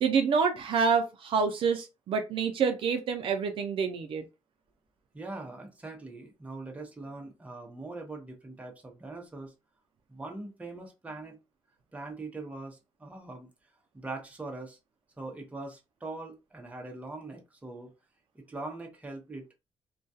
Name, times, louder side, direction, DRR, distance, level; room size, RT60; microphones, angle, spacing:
voice 1, 0.0-4.2, right 5 dB, 65° right, 0.4 m, -27 dB
voice 2, 5.1-9.5 10.1-11.4 11.9-13.5 13.9-14.8 15.2-17.9 18.3-19.5, right 2 dB, 15° right, 0.7 m, -42 dB
2.3 x 2.2 x 2.6 m
cardioid pair, 120°, 10 cm